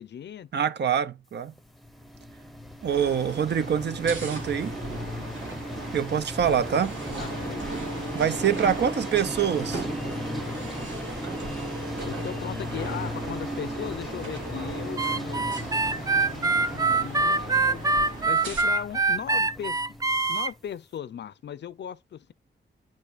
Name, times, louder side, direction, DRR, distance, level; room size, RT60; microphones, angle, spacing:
voice 1, 0.0-0.5 7.2-7.7 8.0-8.9 9.4-10.1 12.1-15.4 15.8-17.9 18.2-19.8 20.1-22.3, left 9 dB, 65° left, 0.5 m, -38 dB
voice 2, 0.5-1.5 2.8-4.7 5.9-7.0 8.1-9.8, right 8 dB, 65° right, 0.6 m, -25 dB
sound 1, 1.6-20.6, equal, ahead, 0.7 m, -37 dB
sound 2, 2.9-18.6, right 3 dB, 80° right, 2.8 m, -38 dB
Harmonica, 15.0-20.5, right 3 dB, 20° right, 0.4 m, -24 dB
9.1 x 4.9 x 2.5 m
wide cardioid pair, 105°, 19 cm